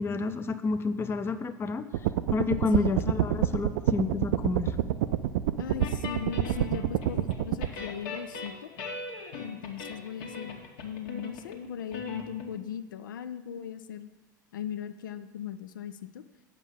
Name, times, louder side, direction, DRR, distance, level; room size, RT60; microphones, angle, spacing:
voice 1, 0.0-1.9 2.3-4.8, left 3 dB, 20° left, 10 dB, 0.5 m, -29 dB
sound 1, 1.9-7.7, right 12 dB, 65° right, 0.4 m, -27 dB
voice 2, 5.6-8.7 9.4-14.1 14.5-16.2, left 9 dB, 80° left, 12 dB, 0.4 m, -38 dB
sound 2, 5.8-7.4 7.6-12.5, left 4 dB, 60° left, 1.5 m, -39 dB
7.3 x 5.3 x 7.4 m, 1.2 s
hypercardioid pair, 85°, 11 cm